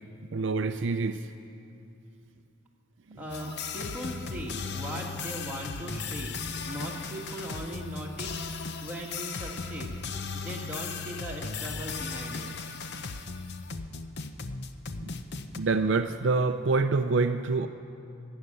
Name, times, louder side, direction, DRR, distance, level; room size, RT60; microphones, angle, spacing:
voice 1, 0.3-1.3 3.1-3.2 15.6-17.7, right 3 dB, 60° right, 7 dB, 0.5 m, -26 dB
voice 2, 3.2-8.4 8.8-10.0 10.3-12.5, equal, 10° right, -3 dB, 1.9 m, -39 dB
sound 1, 3.3-15.6, left 4 dB, 55° left, 0.7 m, -37 dB
23.5 x 8.9 x 6.7 m, 2.6 s
head